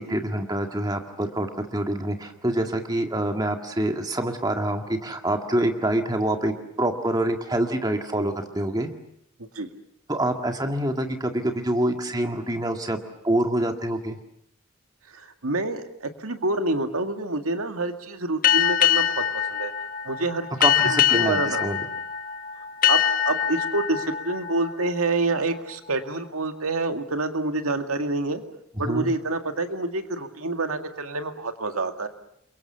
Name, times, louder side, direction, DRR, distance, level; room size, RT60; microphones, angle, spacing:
voice 1, 0.0-8.9 10.1-14.2 20.6-21.9 28.9-29.1, right 1 dB, 20° right, 4 dB, 2.0 m, -26 dB
voice 2, 15.1-19.2 19.5-19.7 20.0-20.5 20.9-21.6 22.9-28.4 28.8-32.1, right 2 dB, 85° right, 6 dB, 2.1 m, -27 dB
sound 1, 18.4-25.7, left 10 dB, 40° left, 1.2 m, -24 dB
29.0 x 23.5 x 7.1 m, 0.75 s
head